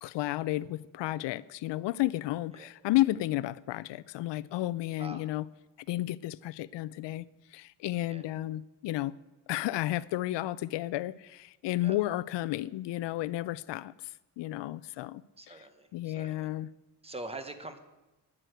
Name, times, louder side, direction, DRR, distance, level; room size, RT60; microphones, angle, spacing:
voice 1, 0.0-5.5 5.9-9.1 9.5-14.1 14.4-15.2 15.5-15.6 15.9-16.7, left 16 dB, 90° left, 0.5 m, -32 dB
voice 2, 15.4-16.5 17.0-17.8, right 2 dB, 15° right, 0.9 m, -43 dB
10.0 x 9.1 x 7.8 m
wide cardioid pair, 175°, 41 cm